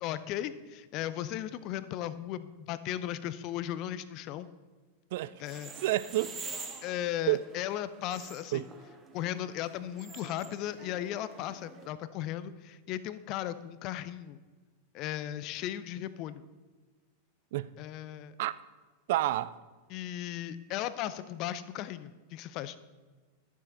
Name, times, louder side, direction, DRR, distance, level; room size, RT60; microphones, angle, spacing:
voice 1, 0.0-4.5 5.4-5.7 6.8-8.7 9.1-14.4 14.9-16.4 17.8-18.3 19.9-22.8, left 12 dB, 40° left, 0.6 m, -36 dB
voice 2, 5.1-5.4 5.8-6.3 7.3-7.5 8.5-8.7 17.5-17.7 18.4-18.5 19.1-19.6, right 16 dB, 50° right, 0.4 m, -29 dB
sound 1, 5.4-11.9, right 4 dB, 20° right, 1.3 m, -47 dB
11.5 x 7.4 x 5.4 m
figure-of-eight pair, 90°, 0 cm